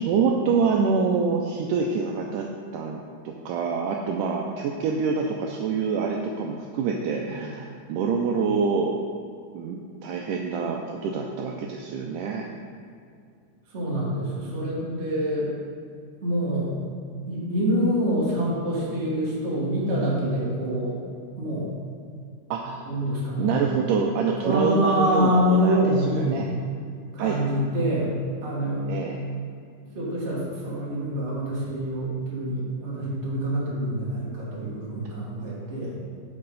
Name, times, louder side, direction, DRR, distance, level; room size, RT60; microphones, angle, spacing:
voice 1, 0.0-2.5 2.7-3.0 3.3-9.0 9.5-12.5 22.5-22.8 23.4-25.8 26.3-26.5 27.2-27.4 28.9-29.2, right 5 dB, 85° right, 1 dB, 1.9 m, -26 dB
voice 2, 13.7-15.5 16.2-16.8 17.3-21.0 21.4-21.7 22.8-23.6 24.4-26.5 27.1-28.1 28.4-28.9 29.9-35.9, equal, 25° right, -7 dB, 1.5 m, -26 dB
12.0 x 5.4 x 4.0 m, 2.3 s
omnidirectional pair, 4.2 m